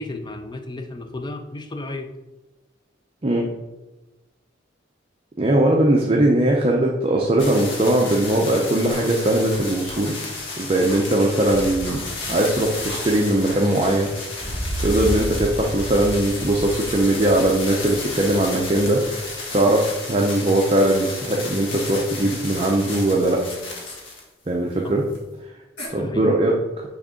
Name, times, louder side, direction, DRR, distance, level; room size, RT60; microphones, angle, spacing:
voice 1, 0.0-2.1 11.2-11.4 24.8-24.9 25.9-26.3, left 2 dB, 25° left, 6 dB, 0.5 m, -34 dB
voice 2, 5.4-10.2 10.6-12.0 12.3-14.1 14.8-23.4 24.5-25.0 25.9-26.5, right 1 dB, 30° right, -1 dB, 0.6 m, -20 dB
sound 1, 7.4-24.2 25.1-25.2, left 3 dB, 90° left, 1.4 m, -33 dB
sound 2, 8.9-9.6 9.9-10.0 10.4-10.5 10.7-11.6 11.8-12.0 12.4-12.5 12.7-13.5 13.8-13.9 14.3-14.4 15.2-15.3 16.4-17.6 17.8-18.0 18.3-18.4 18.6-19.6 19.9-20.0 20.4-21.0 21.2-22.0 22.3-23.6 23.8-24.0 25.1-25.2 25.8-25.9, left 1 dB, 65° left, 2.0 m, -39 dB
sound 3, 11.5-19.4, equal, 10° right, 1.3 m, -33 dB
6.3 x 3.6 x 5.0 m, 1.1 s
head